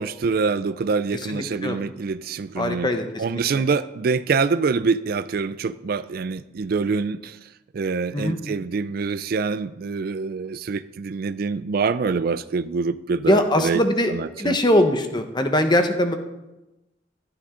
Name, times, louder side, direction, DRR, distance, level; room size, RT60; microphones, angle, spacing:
voice 1, 0.0-2.9 3.2-7.4 7.7-13.8 14.1-14.6, right 4 dB, 50° right, 15 dB, 0.4 m, -25 dB
voice 2, 1.3-1.8 2.6-3.6 8.1-8.4 13.3-16.1, left 1 dB, 25° left, 7 dB, 1.0 m, -22 dB
13.5 x 11.0 x 3.8 m, 0.99 s
head